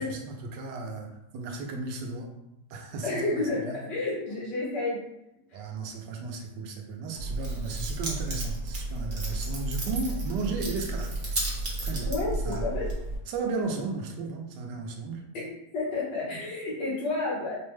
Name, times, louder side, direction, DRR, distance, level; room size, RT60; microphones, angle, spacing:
voice 1, 0.0-2.3 2.7-3.8 5.5-11.1 11.8-12.1 12.4-12.7 13.3-15.2, right 3 dB, 90° right, 3 dB, 1.3 m, -35 dB
voice 2, 3.0-5.0 5.5-5.6 12.1-12.9 15.3-15.4 15.7-17.5, left 2 dB, 90° left, -6 dB, 2.0 m, -30 dB
Keys jangling, 7.2-13.2, right 2 dB, 40° right, 0.7 m, -32 dB
5.1 x 2.1 x 3.1 m, 0.87 s
omnidirectional pair, 1.8 m